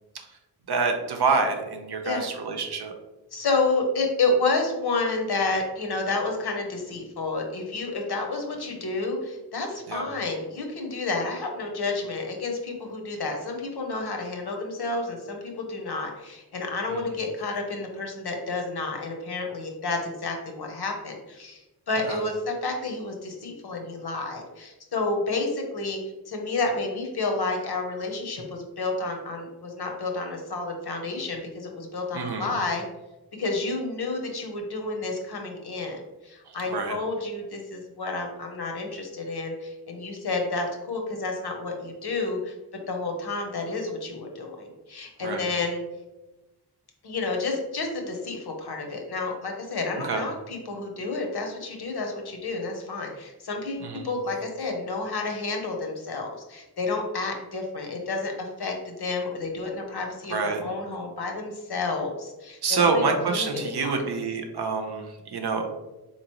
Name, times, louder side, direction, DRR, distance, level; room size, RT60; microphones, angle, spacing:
voice 1, 0.7-2.9 9.9-10.0 16.9-17.1 22.1-22.2 32.1-32.5 36.5-37.0 45.2-45.5 50.0-50.2 53.8-54.1 60.3-60.6 62.6-65.6, right 4 dB, 75° right, 4 dB, 0.7 m, -27 dB
voice 2, 3.3-26.0 26.3-32.8 33.3-42.5 42.9-45.8 47.0-64.0, left 3 dB, 75° left, 3 dB, 0.8 m, -30 dB
3.9 x 2.9 x 3.0 m, 1.1 s
wide cardioid pair, 100°, 39 cm